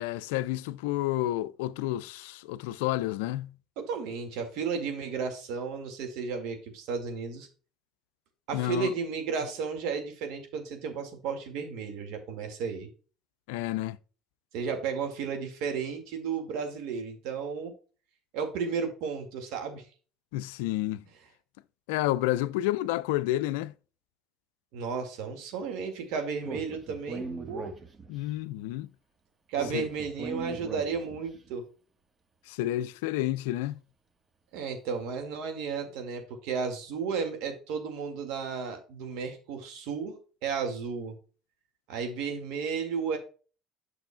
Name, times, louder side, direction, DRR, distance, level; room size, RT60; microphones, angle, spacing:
voice 1, 0.0-3.5 8.5-8.9 13.5-14.0 20.3-21.0 21.9-23.7 28.1-28.9 29.7-29.9 32.5-33.7, left 15 dB, 80° left, 0.3 m, -30 dB
voice 2, 3.8-7.5 8.5-12.9 14.5-17.7 18.3-19.8 24.7-27.7 29.5-31.6 34.5-41.1 41.9-43.2, right 5 dB, 70° right, 1.9 m, -33 dB
Speech, 26.4-28.3 29.5-31.3, right 3 dB, 30° right, 1.3 m, -39 dB
9.0 x 6.2 x 2.2 m
hypercardioid pair, 75°, 0 cm